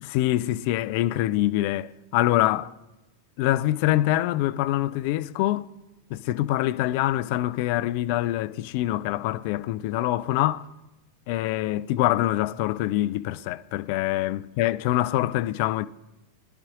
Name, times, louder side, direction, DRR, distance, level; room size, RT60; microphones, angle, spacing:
voice 1, 0.1-2.7 3.4-5.7 6.1-10.7 11.3-15.9, left 15 dB, 45° left, 0.3 m, -25 dB
21.0 x 10.5 x 2.4 m
figure-of-eight pair, 90°, 0 cm